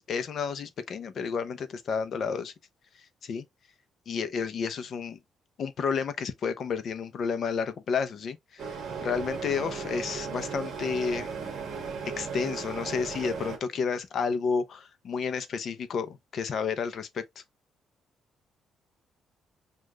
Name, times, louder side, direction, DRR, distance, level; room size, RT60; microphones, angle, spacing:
voice 1, 0.0-2.5 2.9-3.4 4.1-5.2 5.6-11.3 12.2-17.4, left 5 dB, 45° left, 0.6 m, -31 dB
sound 1, 8.6-13.6, right 5 dB, 45° right, 1.5 m, -36 dB
6.4 x 2.4 x 2.3 m
cardioid pair, 160°, 0 cm